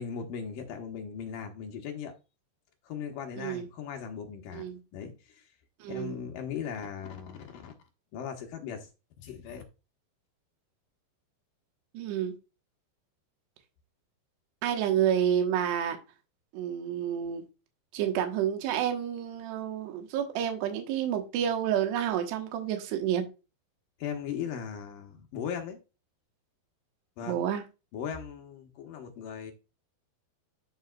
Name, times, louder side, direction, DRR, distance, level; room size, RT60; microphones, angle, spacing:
voice 1, 0.0-2.1 2.8-4.7 4.9-5.4 5.9-7.7 8.1-8.9 9.2-9.6 24.0-25.8 27.2-27.4 27.9-29.5, left 7 dB, 70° left, 2.3 m, -38 dB
voice 2, 5.8-6.3 11.9-12.3 14.6-16.0 16.5-17.4 17.9-23.2 27.3-27.6, right 9 dB, 80° right, 3.3 m, -29 dB
11.5 x 5.4 x 2.3 m
omnidirectional pair, 4.9 m